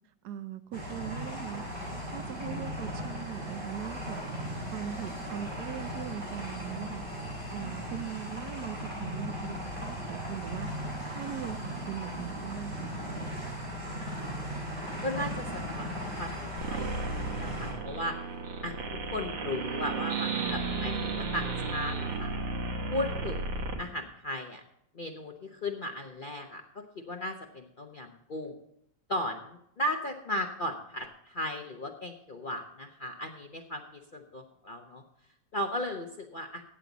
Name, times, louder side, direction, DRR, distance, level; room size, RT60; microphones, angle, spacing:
voice 1, 0.2-1.6 2.1-4.2 4.7-7.0 7.5-13.0, right 10 dB, 70° right, 11 dB, 1.1 m, -40 dB
sound 1, 0.7-17.7, equal, 45° right, 4.9 m, -37 dB
voice 2, 14.1-14.5 15.0-18.2 18.6-22.3 22.9-24.6 24.9-28.5 29.1-33.8 34.1-35.0 35.5-36.6, left 1 dB, 50° left, 3 dB, 0.6 m, -36 dB
sound 2, 16.6-23.8, right 3 dB, 85° right, 2.1 m, -34 dB
15.5 x 8.1 x 3.9 m, 0.75 s
omnidirectional pair, 2.0 m